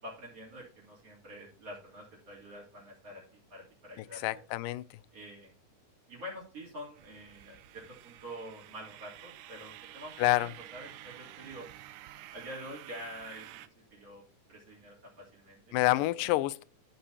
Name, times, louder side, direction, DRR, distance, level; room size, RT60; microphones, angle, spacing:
voice 1, 0.0-4.2 5.1-5.5 6.1-11.7 12.3-13.6 13.9-14.2 14.5-16.3, equal, 45° right, 4.1 m, -47 dB
voice 2, 4.2-4.8 10.2-10.5 15.7-16.6, left 18 dB, 85° left, 2.2 m, -27 dB
sound 1, 7.0-13.7, right 14 dB, 85° right, 2.2 m, -50 dB
14.5 x 7.0 x 2.8 m
omnidirectional pair, 3.8 m